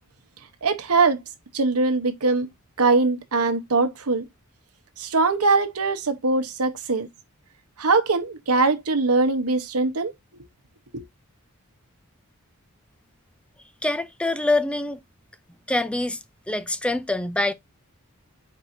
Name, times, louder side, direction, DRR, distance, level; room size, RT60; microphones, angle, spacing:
voice 1, 0.6-1.2 1.5-2.5 2.8-4.3 5.0-7.1 7.8-10.4 10.9-11.0, right 3 dB, 80° right, 0.9 m, -22 dB
voice 2, 13.8-15.0 15.7-16.2 16.5-17.5, left 2 dB, 5° left, 0.4 m, -24 dB
4.6 x 4.4 x 2.6 m
head